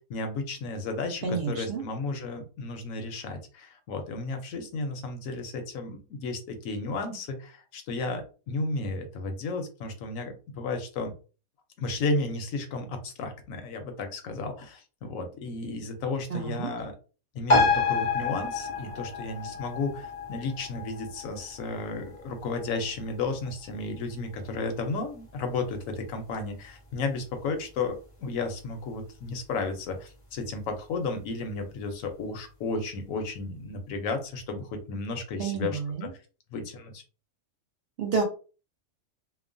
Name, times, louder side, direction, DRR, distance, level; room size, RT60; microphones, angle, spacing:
voice 1, 0.1-11.1 11.8-16.9 17.3-36.1 36.5-37.0, left 3 dB, 70° left, 6 dB, 1.0 m, -33 dB
voice 2, 1.2-1.8 16.3-16.7 35.4-36.1 38.0-38.2, right 5 dB, 55° right, 1 dB, 0.7 m, -29 dB
sound 1, 17.5-24.5 24.8-24.9, left 3 dB, 35° left, 0.5 m, -29 dB
2.9 x 2.1 x 2.5 m, 0.35 s
omnidirectional pair, 1.5 m